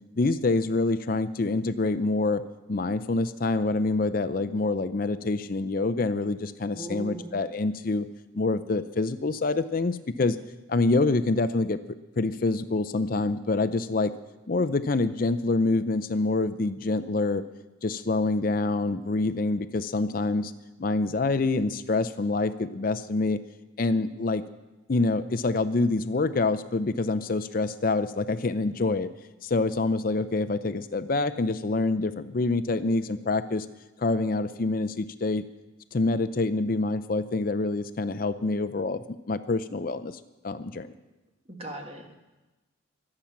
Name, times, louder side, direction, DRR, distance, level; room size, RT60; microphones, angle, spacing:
voice 1, 0.2-2.4 2.7-8.1 8.3-10.4 10.7-11.8 12.2-14.1 14.5-17.4 17.8-20.5 20.8-23.4 23.8-24.4 24.9-29.1 29.4-33.7 34.0-35.5 35.9-40.9, left 3 dB, 45° left, 11 dB, 0.5 m, -26 dB
voice 2, 6.7-7.4 41.5-42.1, right 1 dB, 30° right, 3 dB, 1.7 m, -38 dB
24.0 x 8.7 x 5.8 m, 1.1 s
head